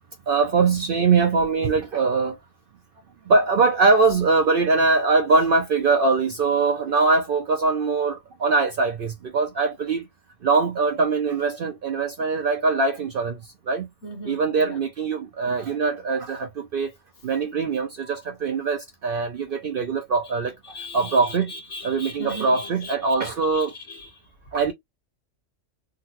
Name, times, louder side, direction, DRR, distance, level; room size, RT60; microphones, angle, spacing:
voice 1, 0.3-2.4 3.3-10.0 10.4-13.4 13.7-13.9 14.3-16.9 17.2-20.5 20.9-21.5 21.8-23.7 24.5-24.7, right 4 dB, 60° right, 0.6 m, -22 dB
voice 2, 14.0-14.8 20.2-20.3 20.6-24.2, left 1 dB, 60° left, 1.4 m, -38 dB
3.7 x 2.2 x 2.8 m
omnidirectional pair, 1.3 m